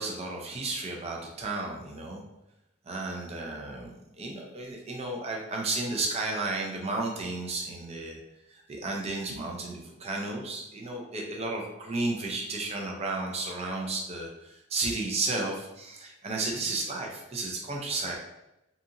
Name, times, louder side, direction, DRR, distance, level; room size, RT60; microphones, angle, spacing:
voice 1, 0.0-2.2 2.9-8.2 8.5-18.2, right 2 dB, 30° right, 0 dB, 0.4 m, -33 dB
2.8 x 2.4 x 2.5 m, 0.88 s
head